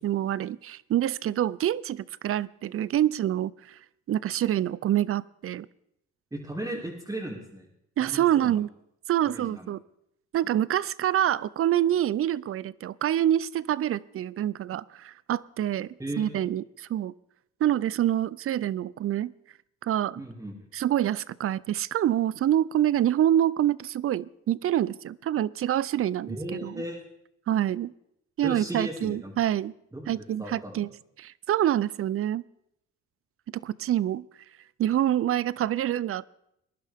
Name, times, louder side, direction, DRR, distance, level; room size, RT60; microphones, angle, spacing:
voice 1, 0.0-3.8 4.1-5.7 8.0-8.7 9.1-9.8 10.3-15.9 16.2-17.1 17.6-19.3 19.8-20.2 20.7-26.8 27.5-27.9 28.4-29.7 30.1-30.9 31.2-32.4 33.5-34.2 34.8-36.2, right 11 dB, 50° right, 21 dB, 0.4 m, -26 dB
voice 2, 6.3-7.7 8.0-8.6 9.3-9.7 16.0-16.4 20.2-20.5 26.3-27.0 28.4-29.3 29.9-30.1 30.4-30.9, right 1 dB, 10° right, -4 dB, 2.6 m, -36 dB
20.5 x 11.0 x 3.5 m, 0.79 s
cardioid pair, 90°, 30 cm